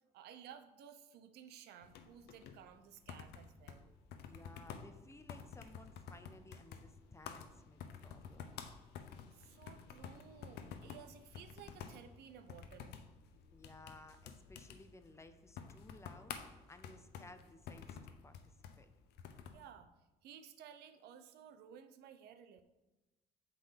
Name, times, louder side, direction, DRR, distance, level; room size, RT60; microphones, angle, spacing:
voice 1, 0.1-3.9 9.3-13.0 19.5-19.9 20.2-22.6, right 8 dB, 75° right, 9 dB, 0.7 m, -56 dB
sound 1, 1.8-19.7, left 7 dB, 75° left, 0.7 m, -51 dB
voice 2, 4.2-8.4 13.5-18.9, left 2 dB, 15° left, 9 dB, 0.6 m, -58 dB
8.2 x 3.9 x 5.8 m, 1.1 s
cardioid pair, 110°, 17 cm